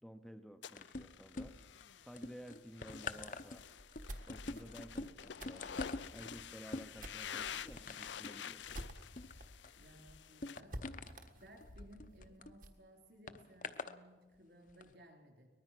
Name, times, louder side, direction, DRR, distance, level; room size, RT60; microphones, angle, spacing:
voice 1, 0.0-1.6 2.0-3.6 4.3-8.9, equal, ahead, 6 dB, 0.7 m, -54 dB
sound 1, 0.6-10.6, left 8 dB, 80° left, 0.6 m, -49 dB
sound 2, 0.8-1.8 2.2-12.5 13.3-14.0 14.7-14.8, left 3 dB, 45° left, 0.8 m, -46 dB
sound 3, 3.8-9.5 9.8-9.9 10.2-10.3 10.7-12.8, right 1 dB, 45° right, 1.5 m, -51 dB
voice 2, 9.7-10.8 11.4-15.5, equal, 60° right, 3 dB, 4.4 m, -60 dB
23.5 x 20.0 x 6.0 m, 1.3 s
head